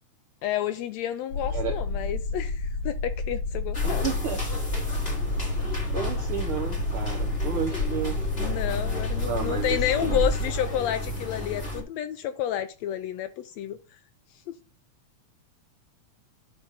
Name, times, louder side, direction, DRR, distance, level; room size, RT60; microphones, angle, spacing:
voice 1, 0.4-4.1 5.7-5.8 8.4-13.8 14.5-14.6, left 11 dB, 80° left, 1.6 m, -30 dB
sound 1, 1.3-10.2, left 3 dB, 60° left, 3.0 m, -30 dB
sound 2, 3.7-11.8, equal, 20° left, 2.5 m, -31 dB
voice 2, 3.8-4.4 5.5-8.2 9.2-10.3, right 8 dB, 70° right, 1.3 m, -33 dB
10.5 x 3.9 x 5.7 m
omnidirectional pair, 3.4 m